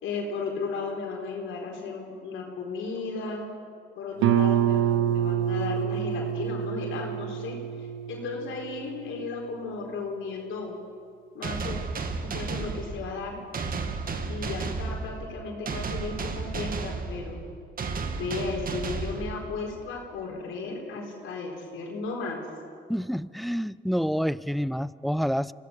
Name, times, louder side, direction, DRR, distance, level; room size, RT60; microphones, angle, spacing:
voice 1, 0.0-3.5 4.0-10.8 11.3-11.8 12.2-13.4 14.3-17.4 18.1-22.4 23.7-23.8, left 4 dB, 80° left, 0 dB, 4.2 m, -35 dB
Guitar, 4.2-9.6, right 10 dB, 90° right, 0.8 m, -27 dB
sound 1, 11.4-19.9, right 4 dB, 45° right, 1.9 m, -33 dB
voice 2, 22.9-25.5, equal, ahead, 19 dB, 0.4 m, -28 dB
25.0 x 16.5 x 6.9 m, 2.3 s
cardioid pair, 90°, 20 cm